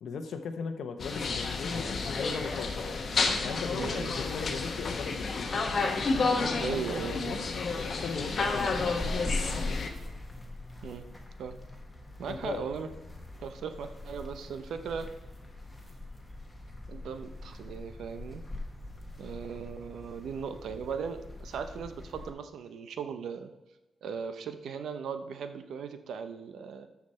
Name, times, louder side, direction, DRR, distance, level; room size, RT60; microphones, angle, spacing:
voice 1, 0.0-3.0 3.4-5.5 6.1-6.8 7.1-8.7 12.2-12.7, left 5 dB, 65° left, 8 dB, 0.9 m, -38 dB
sound 1, 1.0-9.9, left 4 dB, 40° left, 1.0 m, -30 dB
voice 2, 3.8-4.2 6.6-7.4 10.8-11.1 11.4-11.6 12.2-12.9 13.4-15.1 16.9-18.4 19.2-23.5 24.0-26.9, right 6 dB, 75° right, 9 dB, 0.8 m, -38 dB
sound 2, 8.5-22.3, left 2 dB, 5° left, 1.4 m, -42 dB
13.0 x 5.9 x 4.3 m, 1.1 s
wide cardioid pair, 160°, 0 cm